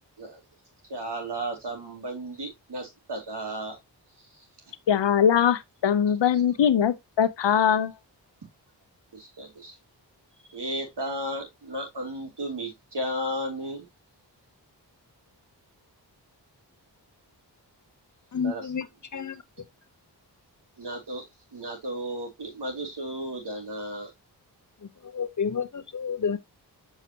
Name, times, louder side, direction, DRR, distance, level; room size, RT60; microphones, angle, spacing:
voice 1, 0.9-3.8 9.1-9.8 10.5-13.9 18.4-18.7 20.8-21.2 21.5-24.1, right 1 dB, 70° right, 3.1 m, -34 dB
voice 2, 4.9-7.9, left 8 dB, 80° left, 0.8 m, -22 dB
voice 3, 18.3-18.9 19.1-19.4 25.1-26.4, left 6 dB, 45° left, 0.7 m, -29 dB
7.0 x 4.9 x 2.8 m
cardioid pair, 50°, 42 cm